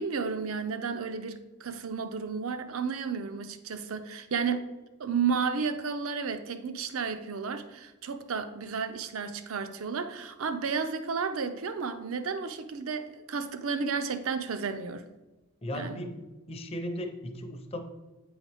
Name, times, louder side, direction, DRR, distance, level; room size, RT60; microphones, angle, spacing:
voice 1, 0.0-4.7 5.0-15.1 15.7-16.0, right 5 dB, 70° right, 0.6 m, -32 dB
voice 2, 15.6-17.8, equal, 25° left, 0.6 m, -36 dB
9.0 x 3.9 x 3.5 m
head